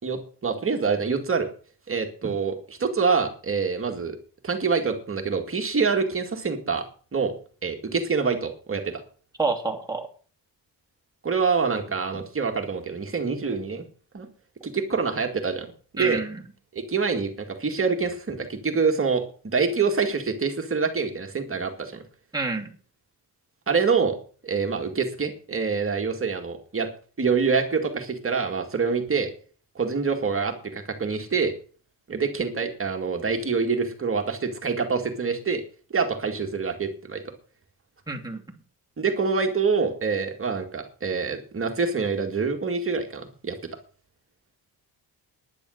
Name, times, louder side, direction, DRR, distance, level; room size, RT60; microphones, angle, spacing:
voice 1, 0.0-1.5 1.9-4.2 4.4-7.3 7.6-9.0 11.2-13.8 14.1-14.3 14.6-16.2 16.7-22.0 23.7-24.2 24.4-26.9 27.2-29.3 29.8-31.5 32.1-35.6 35.9-37.2 39.0-43.6, right 5 dB, 30° right, 5 dB, 2.1 m, -26 dB
voice 2, 9.4-10.1 16.0-16.4 22.3-22.7 38.1-38.4, right 3 dB, 10° right, 0 dB, 2.8 m, -28 dB
10.5 x 10.5 x 6.4 m, 0.41 s
wide cardioid pair, 150°, 41 cm